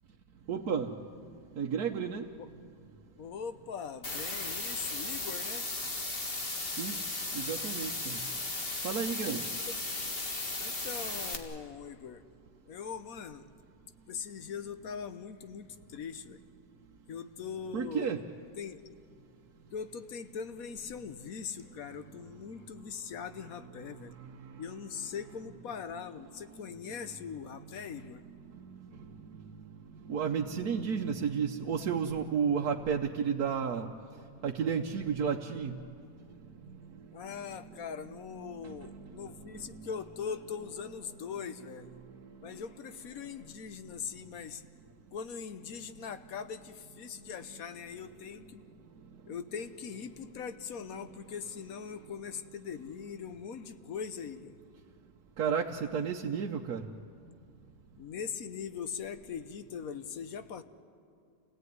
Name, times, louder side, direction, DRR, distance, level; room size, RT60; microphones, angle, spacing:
voice 1, 0.5-1.0 1.6-2.3 6.8-7.0 7.3-8.2 8.8-9.4 17.7-18.2 24.4-24.5 29.0-29.8 30.0-33.9 34.4-35.8 36.2-36.3 37.7-37.8 38.1-39.9 42.1-42.2 55.4-56.9, right 7 dB, 70° right, 1 dB, 1.4 m, -33 dB
voice 2, 3.2-5.7 9.4-9.5 10.6-12.2 12.7-13.5 14.1-16.4 17.1-18.3 18.6-18.8 19.7-24.1 24.6-28.2 37.1-41.9 42.4-44.6 45.1-48.6 49.3-54.6 58.0-60.6, left 7 dB, 65° left, 11 dB, 1.3 m, -41 dB
sound 1, 4.0-11.3, left 2 dB, 35° left, 2.1 m, -36 dB
28.0 x 17.5 x 9.5 m, 2.4 s
omnidirectional pair, 1.7 m